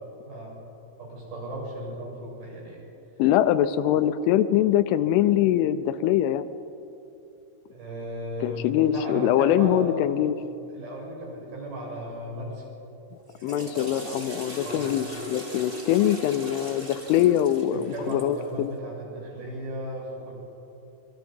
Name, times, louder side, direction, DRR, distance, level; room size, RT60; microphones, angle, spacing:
voice 1, 0.2-0.5 1.0-2.8 7.7-10.0 10.7-12.6 14.6-14.9 17.7-20.3, equal, 50° right, -4 dB, 8.8 m, -36 dB
voice 2, 3.2-6.5 8.4-10.4 13.4-18.7, left 11 dB, 85° left, 12 dB, 3.1 m, -23 dB
Water / Toilet flush, 13.2-18.4, equal, 25° right, 1.1 m, -38 dB
27.5 x 23.5 x 5.4 m, 2.9 s
omnidirectional pair, 5.7 m